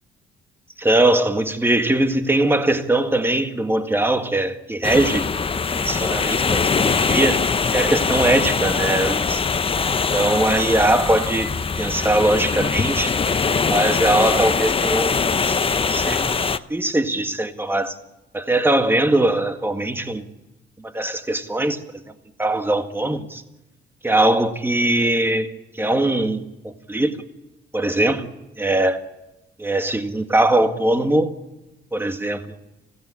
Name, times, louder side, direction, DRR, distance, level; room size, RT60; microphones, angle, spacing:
voice 1, 0.8-5.3 5.7-7.4 7.7-9.4 10.1-13.2 13.7-16.4 16.7-17.9 18.3-20.3 20.8-21.8 22.4-23.4 24.0-27.2 27.7-28.3 28.6-29.0 29.6-31.4 31.9-32.6, right 1 dB, 10° right, 1.8 m, -21 dB
sound 1, 4.8-16.6, left 5 dB, 25° left, 0.7 m, -22 dB
20.5 x 16.5 x 9.9 m
cardioid pair, 90°, 20 cm